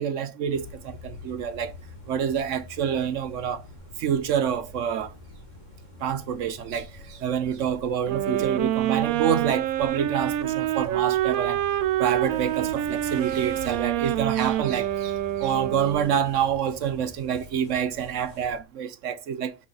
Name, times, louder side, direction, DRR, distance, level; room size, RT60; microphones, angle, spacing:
voice 1, 0.0-1.7 2.1-3.6 4.0-5.1 6.0-11.6 12.0-15.1 15.4-19.6, right 8 dB, 65° right, 1.0 m, -27 dB
sound 1, 0.5-18.6, left 2 dB, 35° left, 1.4 m, -45 dB
sound 2, 8.1-16.3, right 13 dB, 90° right, 1.0 m, -26 dB
6.2 x 6.2 x 3.9 m
omnidirectional pair, 1.4 m